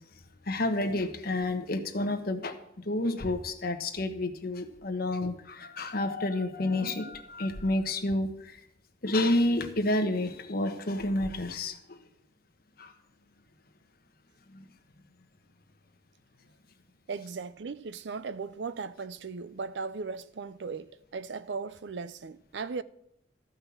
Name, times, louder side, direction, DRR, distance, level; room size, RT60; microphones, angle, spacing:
voice 1, 0.5-2.6 2.8-8.6 9.0-12.0 12.8-12.9 14.5-14.6, left 1 dB, 60° left, 1.3 m, -29 dB
voice 2, 17.1-22.8, right 4 dB, 75° right, 0.5 m, -37 dB
14.0 x 5.5 x 7.2 m
head